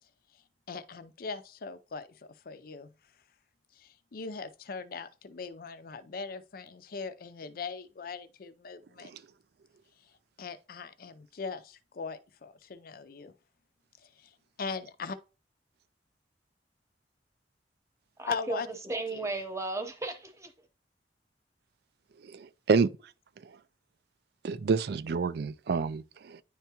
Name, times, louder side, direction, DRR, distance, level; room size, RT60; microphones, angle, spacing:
voice 1, 0.3-2.9 3.7-9.1 10.0-13.3 14.0-15.2 18.3-18.7 19.1-19.3, left 5 dB, 55° left, 0.5 m, -40 dB
voice 2, 18.2-18.6 18.8-20.5, right 2 dB, 15° right, 0.9 m, -35 dB
voice 3, 22.2-22.9 23.4-23.6 24.4-26.4, right 5 dB, 65° right, 0.4 m, -29 dB
10.0 x 3.4 x 2.9 m
head